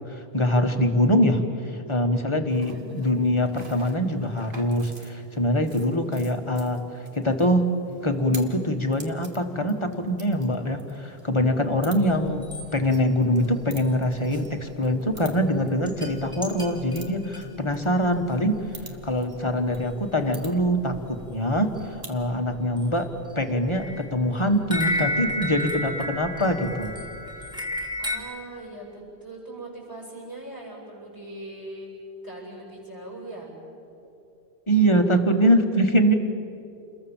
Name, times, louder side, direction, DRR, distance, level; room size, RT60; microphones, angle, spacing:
voice 1, 0.0-7.7 8.0-12.5 12.7-18.6 19.0-23.1 23.3-27.0 34.7-36.1, equal, 30° left, 5 dB, 1.6 m, -23 dB
sound 1, 2.5-22.2, right 2 dB, 60° right, 2.1 m, -49 dB
voice 2, 2.7-3.0 28.0-31.9 32.2-33.5 34.8-35.9, right 2 dB, 20° right, -5 dB, 8.0 m, -41 dB
sound 2, 12.1-12.6 12.9-13.0 13.4-13.5 13.8-14.4 14.8-14.9 15.2-15.4 15.9-17.5 18.3-18.4 18.6-18.8 19.1-19.2 19.5-19.8 20.0-20.1 20.4-21.3 21.7-21.8 22.2-23.0 23.4-28.2, left 1 dB, 5° right, 3.1 m, -32 dB
29.5 x 21.5 x 7.3 m, 2.8 s
omnidirectional pair, 1.0 m